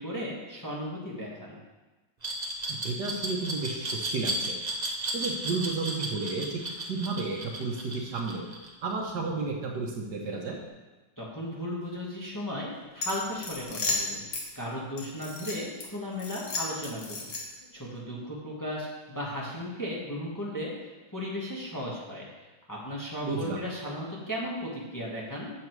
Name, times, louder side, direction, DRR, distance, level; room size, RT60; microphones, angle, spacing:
voice 1, 0.0-1.6 11.2-14.2 14.5-17.3 17.7-20.7 21.1-22.3 22.7-25.5, equal, 10° left, -5 dB, 1.5 m, -35 dB
Glass, 2.2-9.1, right 2 dB, 25° right, 1.0 m, -33 dB
voice 2, 2.8-4.6 5.1-8.5 8.8-10.6 23.2-23.6, right 3 dB, 65° right, 0 dB, 1.5 m, -32 dB
sound 1, 13.0-14.5 15.0-15.9 16.2-17.7, left 3 dB, 70° left, 2.1 m, -33 dB
8.5 x 6.7 x 4.7 m, 1.2 s
omnidirectional pair, 2.1 m